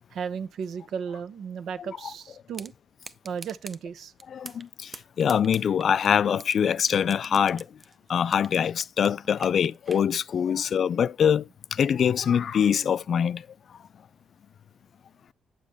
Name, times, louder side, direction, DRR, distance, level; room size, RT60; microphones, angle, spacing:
voice 1, 0.1-2.7 3.2-4.1, right 6 dB, 75° right, 0.8 m, -34 dB
sound 1, 2.5-2.7 3.0-3.8 4.2-4.7 4.9-6.5 6.9-8.6 8.8-10.0, right 3 dB, 25° right, 0.7 m, -43 dB
voice 2, 4.3-7.7 8.1-13.5, left 8 dB, 55° left, 0.4 m, -24 dB
8.7 x 7.3 x 3.4 m
cardioid pair, 110°, 0 cm